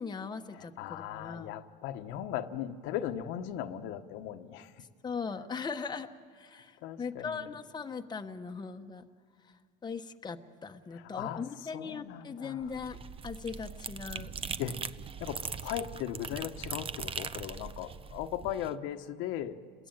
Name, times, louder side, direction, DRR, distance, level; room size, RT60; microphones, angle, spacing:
voice 1, 0.0-1.5 5.0-6.1 6.4-6.7 7.0-9.0 9.8-13.0 13.2-14.3, left 5 dB, 20° left, 5 dB, 1.1 m, -39 dB
voice 2, 0.5-4.7 6.8-7.5 10.9-11.4 11.7-12.8 14.6-14.8 15.2-19.6, left 10 dB, 70° left, 7 dB, 1.3 m, -38 dB
sound 1, 12.6-18.7, right 6 dB, 25° right, 0.8 m, -40 dB
30.0 x 21.5 x 9.1 m, 2.1 s
supercardioid pair, 105°, 21 cm